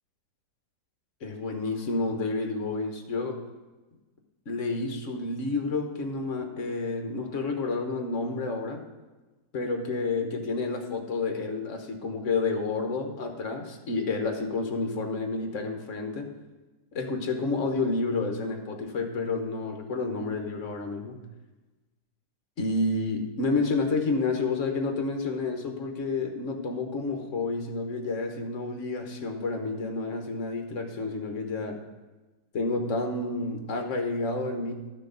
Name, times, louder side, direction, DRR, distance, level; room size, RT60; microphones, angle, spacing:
voice 1, 1.2-3.4 4.5-8.8 9.5-16.3 16.9-21.2 22.6-31.8 32.5-34.7, left 3 dB, 50° left, 4 dB, 1.3 m, -30 dB
12.5 x 6.4 x 3.9 m, 1.2 s
omnidirectional pair, 1.8 m